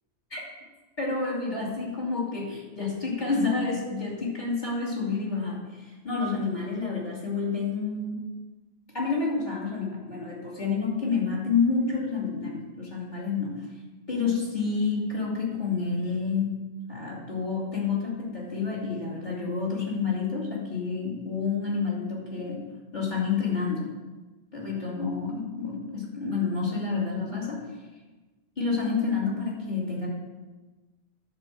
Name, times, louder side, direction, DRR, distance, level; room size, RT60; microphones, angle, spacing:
voice 1, 1.0-8.2 8.9-13.6 14.1-16.6 16.9-22.6 22.9-23.9 24.5-27.6 28.6-30.1, left 4 dB, 40° left, -6 dB, 3.1 m, -29 dB
10.0 x 5.0 x 7.4 m, 1.2 s
omnidirectional pair, 1.1 m